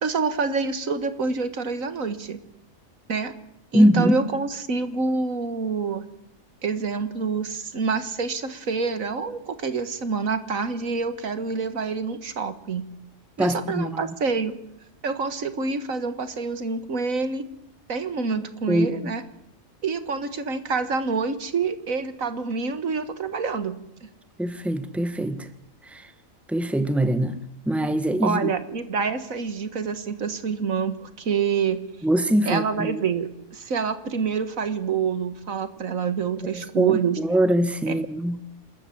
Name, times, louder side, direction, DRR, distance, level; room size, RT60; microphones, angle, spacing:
voice 1, 0.0-2.4 3.1-3.3 3.7-6.1 6.6-12.9 13.4-14.6 15.0-17.4 17.9-19.2 19.8-23.8 28.2-31.8 32.5-37.2 37.9-38.0, right 5 dB, 85° right, 2.0 m, -27 dB
voice 2, 3.7-4.1 13.4-14.0 18.7-19.1 24.4-25.5 25.9-26.1 26.5-27.4 27.7-28.5 32.0-33.0 36.4-38.4, right 1 dB, ahead, 1.3 m, -23 dB
27.0 x 14.0 x 8.5 m
omnidirectional pair, 1.4 m